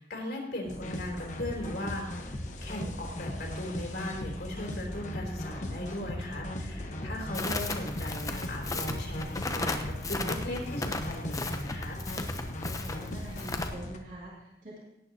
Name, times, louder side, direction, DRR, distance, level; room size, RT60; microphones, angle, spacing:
voice 1, 0.0-12.0, left 1 dB, 65° left, 0 dB, 3.2 m, -38 dB
sound 1, 0.7-14.0, left 1 dB, 45° left, 1.1 m, -38 dB
sound 2, 5.3-12.7, left 1 dB, ahead, 2.2 m, -51 dB
voice 2, 7.2-7.6 12.8-14.8, equal, 45° right, -5 dB, 2.4 m, -45 dB
Crackle, 7.3-13.7, left 3 dB, 20° left, 0.8 m, -36 dB
17.5 x 8.9 x 2.9 m, 0.89 s
head